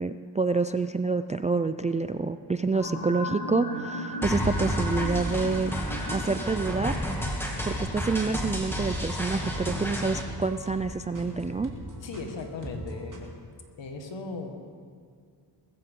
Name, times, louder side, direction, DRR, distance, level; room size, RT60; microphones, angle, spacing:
voice 1, 0.0-5.7 6.1-7.0 7.3-7.4 7.6-11.7, right 4 dB, 20° right, 10 dB, 0.3 m, -28 dB
sound 1, 2.7-8.1 8.4-8.5, equal, 50° left, 5.1 m, -37 dB
sound 2, 4.2-10.2, equal, 5° left, 2.4 m, -31 dB
sound 3, 5.9-13.2, right 1 dB, 45° right, 3.0 m, -40 dB
voice 2, 12.0-13.5 13.8-14.8, left 3 dB, 85° left, 4 dB, 1.8 m, -38 dB
20.0 x 15.0 x 3.8 m, 2.1 s
wide cardioid pair, 100°, 43 cm